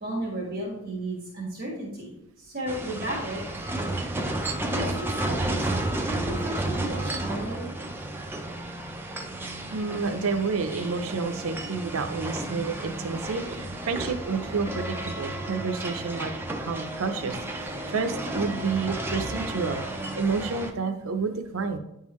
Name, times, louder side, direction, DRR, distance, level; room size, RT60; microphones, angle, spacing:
voice 1, 0.0-3.4 4.7-5.7 6.2-7.7, right 1 dB, 45° right, -5 dB, 1.6 m, -34 dB
sound 1, 2.7-20.7, right 1 dB, 10° right, 0.4 m, -32 dB
voice 2, 9.7-16.3 16.6-19.8 20.1-21.8, right 4 dB, 70° right, 6 dB, 0.5 m, -29 dB
9.5 x 3.7 x 3.1 m, 0.80 s
head